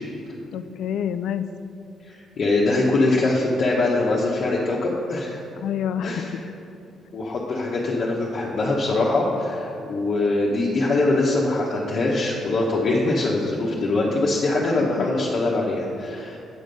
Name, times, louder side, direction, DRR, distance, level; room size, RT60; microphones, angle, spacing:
voice 1, 0.5-1.5 5.6-6.3 14.8-15.1, left 9 dB, 75° left, 12 dB, 0.4 m, -28 dB
voice 2, 2.0-5.4 6.0-6.4 7.1-16.4, left 2 dB, 55° left, -5 dB, 1.0 m, -23 dB
8.7 x 5.1 x 5.3 m, 2.7 s
cardioid pair, 90°, 0 cm